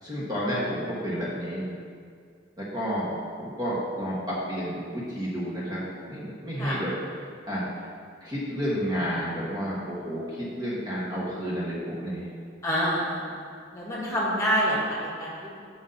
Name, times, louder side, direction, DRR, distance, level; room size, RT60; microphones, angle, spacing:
voice 1, 0.0-1.6 2.6-6.9 7.5-7.6 8.2-12.3, equal, 20° right, -7 dB, 1.2 m, -31 dB
voice 2, 12.6-13.4 13.7-15.5, equal, 15° left, -6 dB, 1.7 m, -27 dB
7.0 x 5.4 x 3.9 m, 2.2 s
head